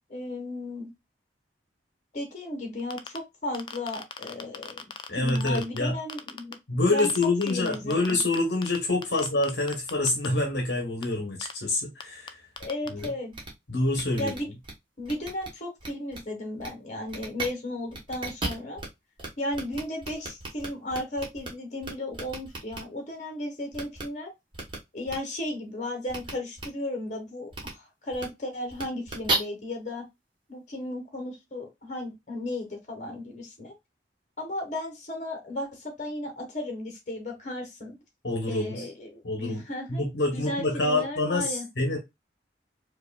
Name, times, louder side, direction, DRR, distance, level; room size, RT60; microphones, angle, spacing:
voice 1, 0.1-0.9 2.1-6.6 6.9-7.1 7.5-8.2 9.1-9.2 12.6-13.3 14.2-14.5 15.0-18.8 19.4-24.3 24.9-30.0 30.5-33.7 34.4-37.9 38.5-41.7, left 1 dB, 40° left, 1.3 m, -35 dB
sound 1, 2.8-3.2 3.5-5.8 6.1-6.5 7.0-8.8 9.0-10.3 11.0-11.1 11.4-11.5 12.0-12.1 12.3-12.4 12.6-12.9, left 6 dB, 25° left, 0.3 m, -37 dB
voice 2, 5.1-5.9 6.7-12.4 12.9-13.1 13.7-14.3 38.2-38.9 39.2-39.6 39.9-42.0, left 2 dB, 70° left, 1.0 m, -26 dB
sound 2, 12.6-12.7 13.0-13.1 13.3-13.5 13.9-14.7 15.0-15.5 15.8-16.2 16.6-16.7 17.1-17.5 17.9-18.9 19.2-19.3 19.5-21.5 21.8-22.8 23.7-24.0 24.5-24.8 25.1-25.2 26.1-26.3 26.6-26.7 27.5-27.7 28.1-28.2 28.7-29.3, right 2 dB, 25° right, 1.2 m, -34 dB
4.7 x 2.5 x 2.3 m
head